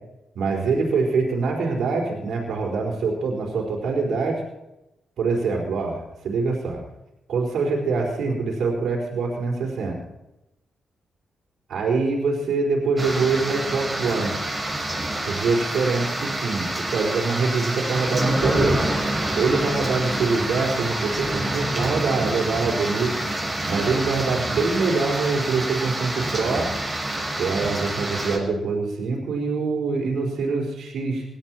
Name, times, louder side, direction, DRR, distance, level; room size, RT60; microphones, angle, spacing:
voice 1, 0.3-4.4 5.2-6.8 7.3-10.0 11.7-14.3 15.2-18.8 19.3-23.2 23.7-26.7 27.4-31.2, right 4 dB, 70° right, -1 dB, 4.4 m, -24 dB
sound 1, 13.0-28.4, right 1 dB, 20° right, 6.3 m, -27 dB
18.0 x 13.0 x 4.5 m, 0.93 s
supercardioid pair, 45°, 0 cm